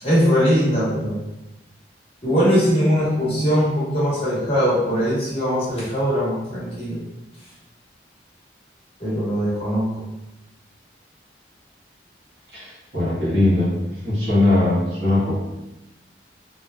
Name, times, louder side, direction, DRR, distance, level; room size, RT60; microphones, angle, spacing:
voice 1, 0.0-1.2 2.2-7.0 9.0-9.9, equal, 35° left, -9 dB, 1.0 m, -20 dB
voice 2, 12.5-13.7 14.0-15.4, left 2 dB, 65° right, -9 dB, 1.2 m, -20 dB
2.9 x 2.2 x 2.2 m, 0.97 s
head